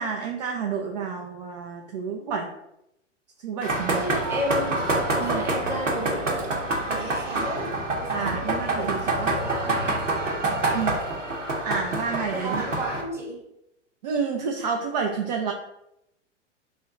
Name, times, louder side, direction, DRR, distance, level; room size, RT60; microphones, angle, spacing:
voice 1, 0.0-2.5 3.4-4.0 5.2-5.4 8.1-9.4 10.7-11.0 11.6-12.6 14.0-15.5, right 6 dB, 35° right, 2 dB, 0.4 m, -29 dB
sound 1, 3.6-13.0, right 2 dB, 85° right, 0.9 m, -27 dB
voice 2, 4.0-4.8 5.2-10.0 10.4-10.9 12.3-13.4, equal, 5° right, -3 dB, 0.8 m, -34 dB
3.1 x 2.7 x 3.7 m, 0.82 s
figure-of-eight pair, 100°, 37 cm